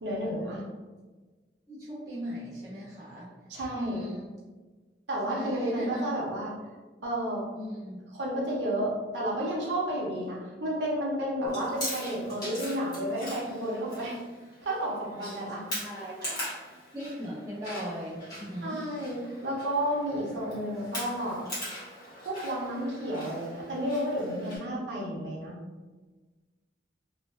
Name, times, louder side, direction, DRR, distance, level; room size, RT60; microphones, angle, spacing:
voice 1, 0.0-0.6 3.5-4.1 5.1-6.5 7.0-7.5 8.1-14.2 14.6-16.3 18.6-21.4 22.2-25.5, right 1 dB, 90° right, -4 dB, 0.6 m, -31 dB
voice 2, 1.7-3.3 3.7-4.3 5.3-6.1 7.5-8.0 15.7-16.1 16.9-18.8, equal, 20° right, -9 dB, 0.8 m, -38 dB
Chewing mastication, 11.5-24.6, equal, 25° left, 0.9 m, -41 dB
2.5 x 2.2 x 2.2 m, 1.3 s
head